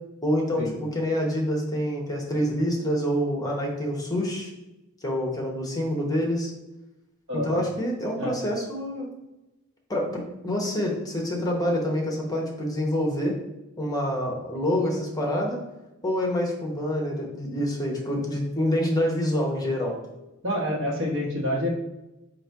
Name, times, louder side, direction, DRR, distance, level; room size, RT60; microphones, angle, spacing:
voice 1, 0.2-4.5 5.0-6.5 7.4-9.1 9.9-13.4 13.8-15.6 16.0-20.0, equal, 20° left, 0 dB, 0.9 m, -27 dB
voice 2, 7.3-7.6 8.2-8.3 20.4-21.7, left 1 dB, 60° right, -1 dB, 1.2 m, -27 dB
4.0 x 2.9 x 4.6 m, 0.98 s
head